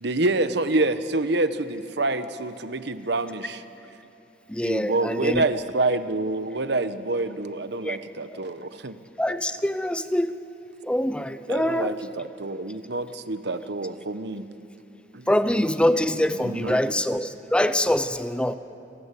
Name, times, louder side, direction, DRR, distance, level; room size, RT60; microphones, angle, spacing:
voice 1, 0.0-3.6 4.6-9.0 11.5-14.4 15.1-15.3 16.4-16.8, right 2 dB, 65° right, 11 dB, 1.1 m, -27 dB
voice 2, 4.5-5.5 7.8-8.0 8.3-8.4 9.2-10.4 10.8-12.0 15.3-18.6, left 1 dB, 5° left, 11 dB, 0.6 m, -24 dB
29.0 x 19.0 x 8.4 m, 2.7 s
head